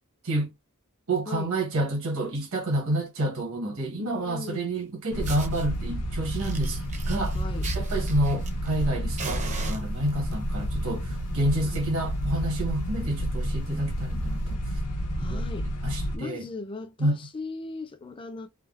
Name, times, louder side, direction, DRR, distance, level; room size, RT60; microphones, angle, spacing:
voice 1, 1.1-7.4 7.7-14.8 15.2-15.4 15.8-16.4 17.0-17.2, right 1 dB, 65° right, 1.0 m, -29 dB
voice 2, 4.0-4.8 7.3-7.7 11.6-11.8 15.2-15.7 16.1-18.5, left 3 dB, 25° left, 0.4 m, -38 dB
Fire, 4.7-4.8 5.2-5.7 6.2-8.9 9.2-10.3 11.2-11.4 11.7-11.8 12.2-12.3 12.6-12.8 13.4-13.5 14.4-14.5, right 4 dB, 30° right, 0.5 m, -40 dB
sound 1, 5.1-16.2, equal, 85° left, 0.7 m, -30 dB
3.4 x 2.0 x 2.3 m
head